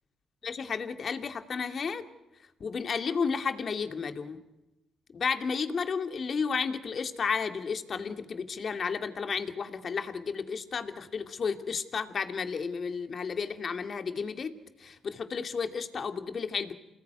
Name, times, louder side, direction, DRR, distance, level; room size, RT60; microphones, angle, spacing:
voice 1, 0.4-2.0 2.6-4.4 5.1-14.5 14.8-16.7, left 5 dB, 50° left, 7 dB, 2.3 m, -32 dB
28.5 x 19.5 x 9.5 m, 0.97 s
hypercardioid pair, 50°, 0 cm